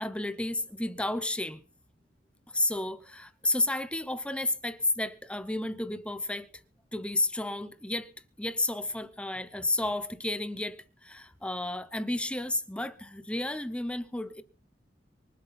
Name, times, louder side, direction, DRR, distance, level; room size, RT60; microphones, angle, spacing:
voice 1, 0.0-1.6 2.5-6.5 6.9-8.1 8.4-14.4, left 2 dB, 5° left, 0.7 m, -32 dB
24.0 x 8.1 x 5.6 m
head